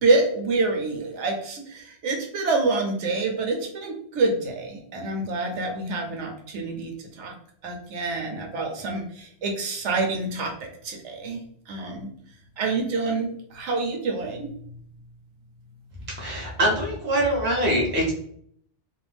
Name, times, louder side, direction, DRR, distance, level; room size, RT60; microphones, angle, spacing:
voice 1, 0.0-7.3 7.6-11.4 11.7-12.1 12.6-14.5, right 3 dB, 75° right, 2 dB, 0.9 m, -27 dB
voice 2, 16.2-18.1, right 1 dB, 15° right, -2 dB, 0.5 m, -23 dB
2.5 x 2.1 x 3.2 m, 0.64 s
omnidirectional pair, 1.2 m